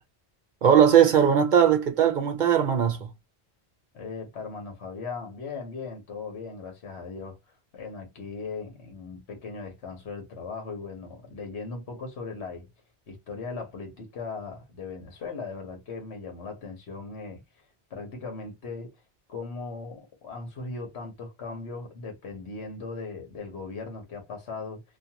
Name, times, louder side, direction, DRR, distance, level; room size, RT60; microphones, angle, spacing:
voice 1, 0.6-3.1, right 8 dB, 50° right, 0.7 m, -19 dB
voice 2, 3.9-12.7 13.1-18.9 19.3-24.8, left 4 dB, 80° left, 1.3 m, -38 dB
2.6 x 2.4 x 2.8 m
omnidirectional pair, 1.1 m